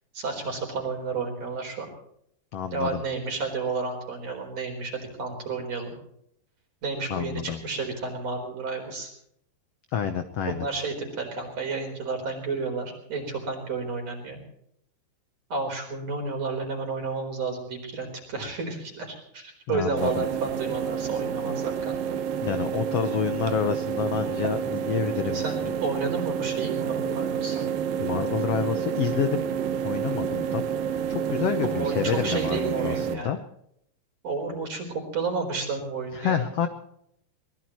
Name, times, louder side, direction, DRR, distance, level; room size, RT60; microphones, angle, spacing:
voice 1, 0.1-1.9 2.7-5.9 6.8-9.1 10.5-14.4 15.5-22.0 25.3-27.7 31.6-33.3 34.2-36.5, right 4 dB, 45° right, 3 dB, 5.3 m, -31 dB
voice 2, 2.5-3.0 7.1-7.6 9.9-10.7 19.7-20.2 22.4-25.7 28.0-29.4 29.8-30.6 30.9-33.4 36.1-36.7, left 8 dB, 70° left, 8 dB, 1.5 m, -28 dB
sound 1, 20.0-33.1, right 8 dB, 80° right, 2.9 m, -29 dB
23.0 x 20.0 x 3.1 m, 0.72 s
omnidirectional pair, 4.0 m